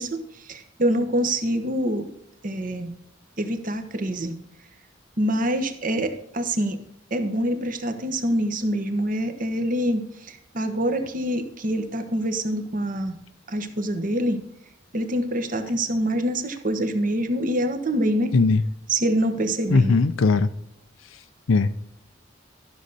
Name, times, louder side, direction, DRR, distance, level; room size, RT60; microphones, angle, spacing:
voice 1, 0.0-2.1 2.4-2.9 3.4-4.4 5.2-6.8 7.1-13.2 13.5-14.4 14.9-18.3 18.9-19.9, right 1 dB, 45° right, 1.1 m, -25 dB
voice 2, 19.7-20.5 21.5-21.7, left 4 dB, 85° left, 0.5 m, -18 dB
12.5 x 6.5 x 4.1 m
head